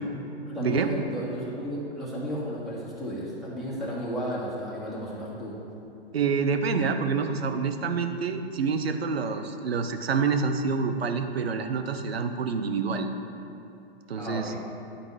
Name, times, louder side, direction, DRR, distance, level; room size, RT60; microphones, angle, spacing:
voice 1, 0.4-5.5 14.1-14.6, equal, ahead, -8 dB, 2.0 m, -33 dB
voice 2, 6.1-13.1 14.1-14.5, right 5 dB, 80° right, 7 dB, 0.8 m, -27 dB
10.5 x 4.3 x 4.8 m, 2.8 s
hypercardioid pair, 120°, 30 cm